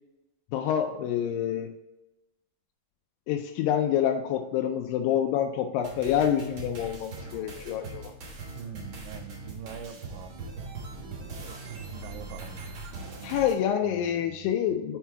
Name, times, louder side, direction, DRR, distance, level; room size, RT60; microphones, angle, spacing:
voice 1, 0.5-1.7 3.3-8.1 13.2-15.0, left 9 dB, 85° left, 4 dB, 2.2 m, -27 dB
sound 1, 5.8-13.6, right 3 dB, 55° right, 1.5 m, -41 dB
voice 2, 8.6-13.3 13.8-14.8, right 8 dB, 85° right, 9 dB, 2.2 m, -45 dB
5.8 x 4.6 x 4.6 m, 1.0 s
omnidirectional pair, 4.0 m